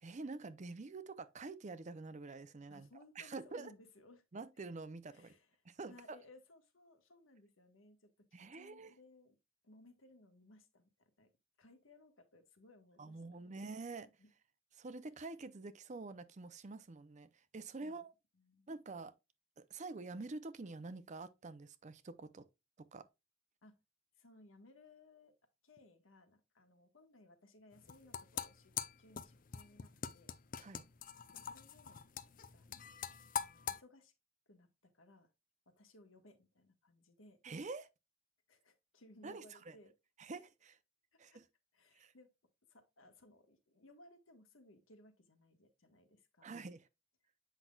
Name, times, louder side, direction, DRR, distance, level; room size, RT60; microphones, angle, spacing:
voice 1, 0.0-2.9 3.2-3.7 4.3-5.3 5.6-6.2 8.3-8.9 13.0-14.1 14.8-18.1 18.7-19.1 19.6-22.5 22.8-23.1 30.6-30.8 37.4-37.9 39.2-39.8 40.2-40.8 41.2-41.4 41.9-42.1 46.4-46.9, right 3 dB, 35° right, 0.5 m, -47 dB
voice 2, 2.7-4.2 5.1-5.6 5.9-9.4 9.6-11.3 11.6-13.5 14.2-14.3 17.8-18.0 18.3-18.7 23.6-23.7 24.1-25.3 25.6-28.7 29.0-30.4 31.3-32.0 32.5-32.7 33.1-34.1 34.5-35.3 35.7-37.4 38.5-39.9 41.1-41.4 41.7-42.3 42.7-46.5, left 2 dB, 85° left, 1.4 m, -63 dB
sound 1, 27.7-33.8, left 8 dB, 45° left, 0.5 m, -43 dB
8.0 x 5.8 x 2.3 m
head